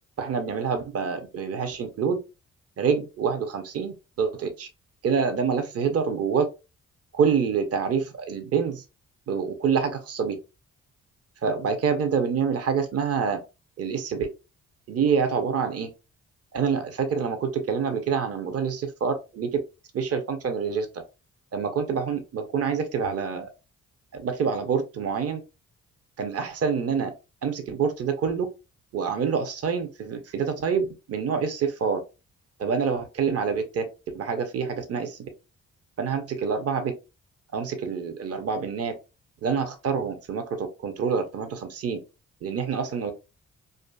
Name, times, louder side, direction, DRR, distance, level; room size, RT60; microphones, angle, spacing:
voice 1, 0.2-2.2 2.8-4.7 5.0-6.5 7.1-8.8 9.3-10.4 11.4-13.4 13.8-14.3 14.9-15.9 16.5-19.5 19.9-20.9 21.5-23.5 24.1-25.4 26.2-27.1 27.4-28.5 28.9-32.0 32.6-33.9 34.1-35.3 36.0-36.9 37.5-38.9 39.4-42.0 42.4-43.1, right 6 dB, 45° right, 0.7 m, -26 dB
2.5 x 2.4 x 2.2 m
supercardioid pair, 50°, 33 cm